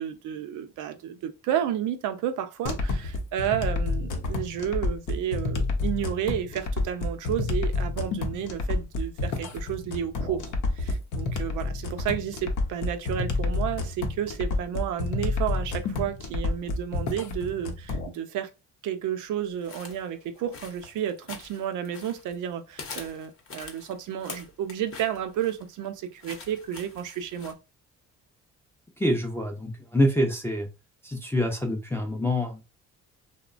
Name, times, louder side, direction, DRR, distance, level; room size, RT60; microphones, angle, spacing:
voice 1, 0.0-18.5 18.8-27.6, right 10 dB, 80° right, 0.5 m, -31 dB
sound 1, 2.7-18.1, left 3 dB, 80° left, 0.6 m, -29 dB
sound 2, 19.6-22.5 22.8-27.5, left 4 dB, 45° left, 0.7 m, -44 dB
voice 2, 29.0-30.7 31.0-32.6, left 1 dB, 10° left, 0.4 m, -26 dB
2.9 x 2.1 x 2.4 m
cardioid pair, 90°, 30 cm